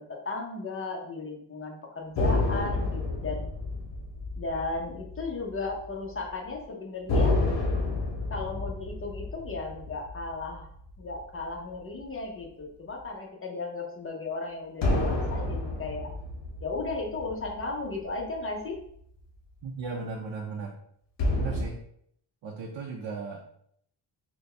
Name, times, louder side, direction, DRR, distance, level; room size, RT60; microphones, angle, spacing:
voice 1, 0.0-3.4 4.4-7.5 8.3-10.7 11.0-16.1 16.6-18.8, left 3 dB, 30° left, 0 dB, 0.7 m, -35 dB
sound 1, 2.2-5.9 6.1-6.3 7.1-11.7 14.8-18.4 21.2-21.7, left 2 dB, 65° left, 0.9 m, -30 dB
voice 2, 19.6-20.7 21.3-21.8 22.4-23.6, right 4 dB, 80° right, 0 dB, 0.7 m, -36 dB
4.0 x 2.2 x 3.3 m, 0.69 s
wide cardioid pair, 115°, 45 cm